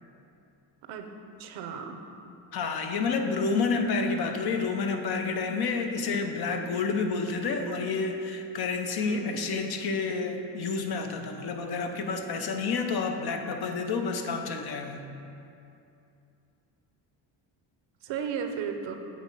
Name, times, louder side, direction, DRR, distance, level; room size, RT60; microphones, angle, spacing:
voice 1, 1.4-2.0 9.0-9.5 18.0-19.0, right 6 dB, 75° right, 6 dB, 0.7 m, -35 dB
voice 2, 2.5-15.0, left 4 dB, 55° left, 5 dB, 0.7 m, -29 dB
7.8 x 3.1 x 5.3 m, 2.7 s
supercardioid pair, 80°, 46 cm